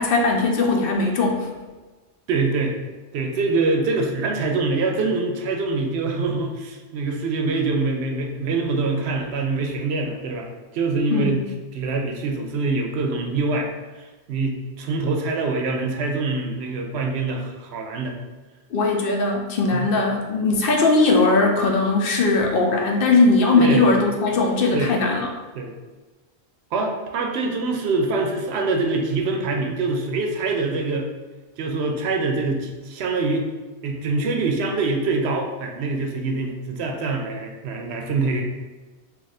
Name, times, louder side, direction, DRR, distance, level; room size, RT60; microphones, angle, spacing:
voice 1, 0.0-1.5 11.1-11.4 18.7-25.3, left 3 dB, 60° left, 1 dB, 0.7 m, -19 dB
voice 2, 2.3-2.7 3.1-11.4 11.7-13.7 14.3-18.1 19.7-19.9 23.6-23.9 24.7-25.0 25.5-25.7 26.7-31.1 31.6-33.5 33.8-38.4, right 3 dB, 75° right, 2 dB, 0.8 m, -24 dB
2.8 x 2.4 x 4.0 m, 1.2 s
omnidirectional pair, 1.1 m